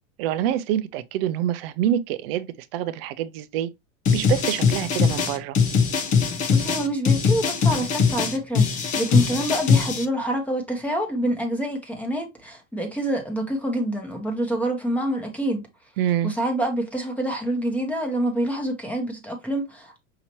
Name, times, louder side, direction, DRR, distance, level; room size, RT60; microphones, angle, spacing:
voice 1, 0.2-2.5 2.7-3.7 4.1-5.6 16.0-16.3, right 11 dB, 50° right, 0.5 m, -26 dB
sound 1, 4.1-10.1, left 6 dB, 20° left, 0.5 m, -21 dB
voice 2, 6.5-15.7 16.2-20.0, right 1 dB, 5° left, 0.9 m, -27 dB
5.7 x 2.8 x 2.9 m
supercardioid pair, 145°, 38 cm